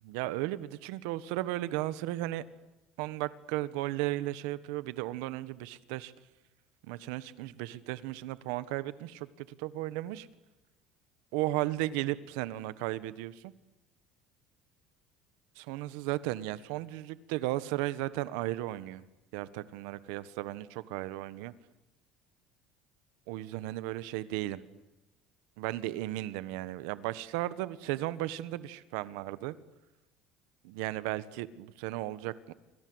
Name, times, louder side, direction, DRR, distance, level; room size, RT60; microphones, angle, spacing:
voice 1, 0.0-2.4 3.0-6.1 6.8-10.3 11.3-13.5 15.5-19.0 19.3-21.5 23.3-24.6 25.6-29.5 30.6-32.5, right 16 dB, 85° right, 16 dB, 1.3 m, -35 dB
29.0 x 25.0 x 8.0 m, 1.0 s
cardioid pair, 170°, 0 cm